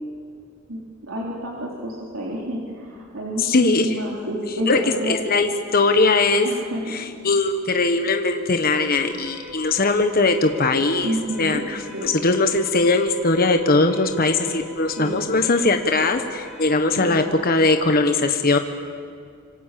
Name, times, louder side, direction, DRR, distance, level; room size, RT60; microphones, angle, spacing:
voice 1, 0.7-5.2 6.4-7.1 11.0-11.6 11.9-12.1 15.0-15.2 17.0-17.2, equal, 85° right, -4 dB, 3.8 m, -29 dB
voice 2, 3.4-4.0 4.7-4.8 5.1-6.5 6.9-18.6, left 3 dB, 45° left, 6 dB, 1.3 m, -20 dB
Alarm, 8.7-17.9, left 2 dB, 15° right, 8.0 m, -42 dB
27.0 x 25.5 x 7.6 m, 2.4 s
head